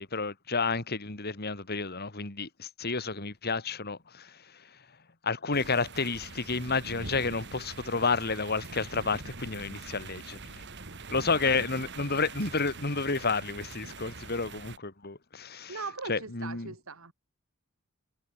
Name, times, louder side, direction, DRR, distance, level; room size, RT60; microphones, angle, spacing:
voice 1, 0.0-4.7 5.2-10.6 11.1-15.8 16.1-16.7, left 4 dB, 50° left, 2.7 m, -31 dB
sound 1, 5.5-14.8, right 3 dB, 55° right, 3.2 m, -44 dB
voice 2, 11.4-11.8 15.7-17.1, right 4 dB, 85° right, 2.6 m, -40 dB
head